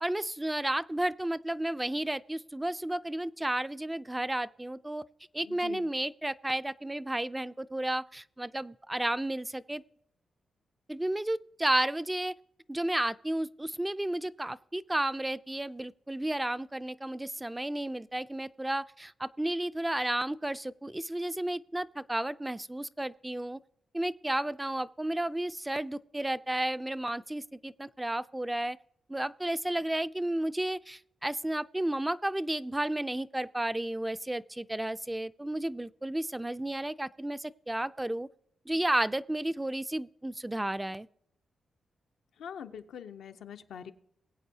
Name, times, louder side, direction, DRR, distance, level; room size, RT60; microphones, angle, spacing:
voice 1, 0.0-5.1 5.3-9.8 10.9-12.3 12.7-23.6 23.9-28.8 29.1-38.3 38.7-41.1, right 1 dB, 15° right, 0.3 m, -32 dB
voice 2, 42.4-43.9, left 8 dB, 90° left, 0.5 m, -43 dB
21.0 x 8.3 x 2.7 m
cardioid pair, 70°, 0 cm